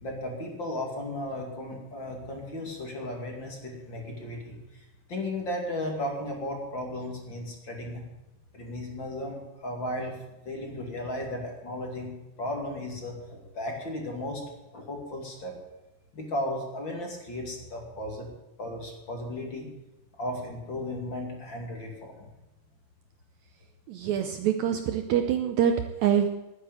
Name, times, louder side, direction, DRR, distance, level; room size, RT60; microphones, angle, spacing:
voice 1, 0.0-4.8 5.1-8.0 8.5-10.2 10.4-12.1 12.4-14.4 14.7-15.5 16.1-18.3 18.6-19.7 20.2-22.3, left 1 dB, 35° left, 1 dB, 2.8 m, -35 dB
voice 2, 23.9-26.3, right 9 dB, 75° right, 6 dB, 1.8 m, -25 dB
11.5 x 9.9 x 9.1 m, 0.99 s
omnidirectional pair, 3.8 m